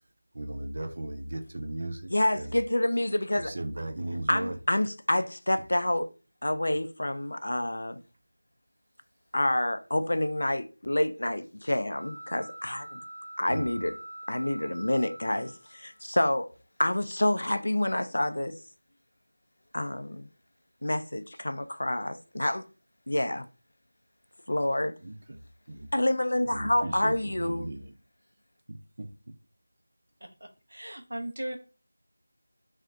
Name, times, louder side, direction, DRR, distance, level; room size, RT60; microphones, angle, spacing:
voice 1, 0.3-2.6 3.4-4.6 13.5-13.7 25.0-25.9 26.4-28.0 28.7-29.1, right 1 dB, 50° right, 0.4 m, -37 dB
voice 2, 2.1-3.5 4.3-6.1 6.4-8.0 9.3-13.0 13.4-13.9 14.3-16.5 16.8-18.6 19.7-20.3 20.8-22.6 23.1-23.5 24.5-24.9 25.9-27.7, left 1 dB, 70° left, 0.3 m, -28 dB
sound 1, 11.9-16.0, right 1 dB, 25° right, 1.0 m, -44 dB
voice 3, 30.2-31.6, right 1 dB, 70° right, 0.8 m, -38 dB
3.7 x 2.5 x 2.3 m
figure-of-eight pair, 175°, 0 cm